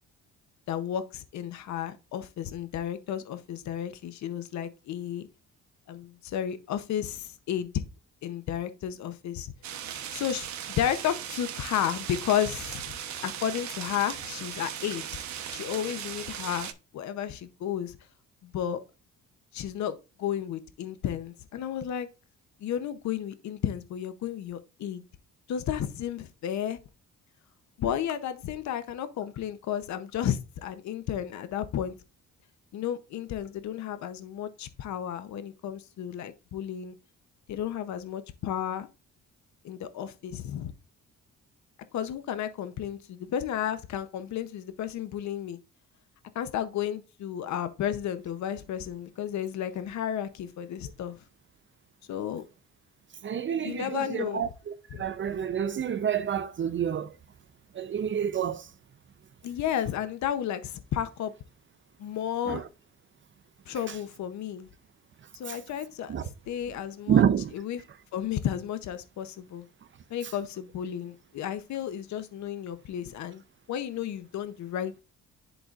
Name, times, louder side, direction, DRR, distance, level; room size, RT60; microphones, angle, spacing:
voice 1, 0.7-5.2 5.9-7.8 8.2-9.5 10.1-10.5 10.8-12.8 13.2-15.1 15.5-16.7 16.9-18.0 18.4-18.8 19.5-22.1 22.6-25.0 25.5-26.8 27.8-32.0 32.7-37.0 37.5-38.9 39.6-40.7 41.9-45.6 46.3-51.2 52.1-52.4 53.6-54.4 54.9-55.0 59.4-61.3 62.0-62.6 63.7-64.7 65.3-66.2 66.5-67.2 67.5-67.8 68.1-69.7 70.1-73.4 73.7-75.0, left 10 dB, 65° left, 0.7 m, -32 dB
sound 1, 9.6-16.7, right 9 dB, 70° right, 0.9 m, -38 dB
voice 2, 53.2-57.1 57.7-58.7 62.5-62.6 65.5-65.6 66.1-66.2 67.1-67.5, right 8 dB, 40° right, 0.6 m, -28 dB
11.0 x 3.9 x 2.4 m
cardioid pair, 90°, 30 cm